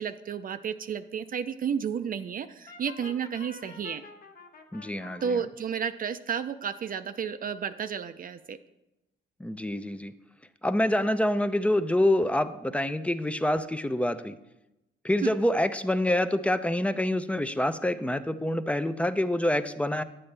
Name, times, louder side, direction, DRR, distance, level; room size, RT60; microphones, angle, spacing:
voice 1, 0.0-4.0 5.2-8.6 15.2-15.3, right 7 dB, 45° right, 9 dB, 0.5 m, -32 dB
Brass instrument, 2.7-5.4, left 4 dB, 45° left, 1.1 m, -47 dB
voice 2, 4.7-5.4 9.4-10.1 10.6-14.3 15.0-20.0, left 1 dB, 5° left, 12 dB, 0.5 m, -26 dB
9.3 x 8.7 x 3.3 m, 0.92 s
cardioid pair, 90°, 20 cm